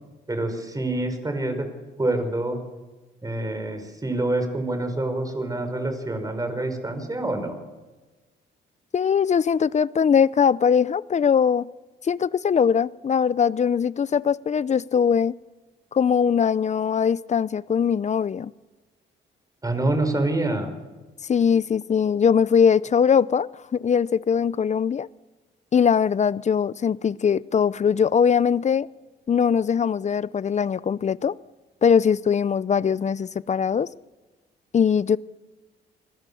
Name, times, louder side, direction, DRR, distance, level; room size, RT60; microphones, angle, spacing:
voice 1, 0.3-1.7 2.0-2.6 3.2-7.6 19.6-20.7, right 2 dB, 20° right, 5.7 m, -26 dB
voice 2, 8.9-11.7 12.0-15.4 15.9-18.5 21.3-25.1 25.7-28.9 29.3-31.4 31.8-33.9 34.7-35.2, left 7 dB, 35° left, 0.7 m, -21 dB
28.5 x 21.0 x 7.1 m
cardioid pair, 90°, 20 cm